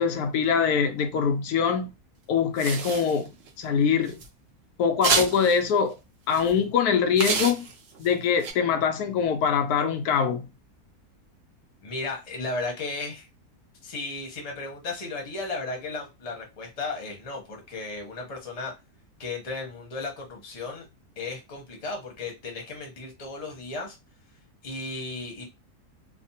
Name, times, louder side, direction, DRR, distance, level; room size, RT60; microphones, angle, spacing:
voice 1, 0.0-1.9 2.3-4.2 4.8-6.0 6.3-7.7 8.0-10.5, left 6 dB, 90° left, 1.1 m, -23 dB
sound 1, 2.6-3.5 4.1-4.3 5.0-5.6 6.3-6.5 7.2-8.1 8.4-8.5, right 5 dB, 60° right, 0.7 m, -27 dB
voice 2, 11.8-13.3 13.8-18.7 19.2-20.9 21.2-24.0 24.6-25.4, left 3 dB, 30° left, 0.8 m, -35 dB
3.2 x 2.0 x 2.7 m
omnidirectional pair, 1.6 m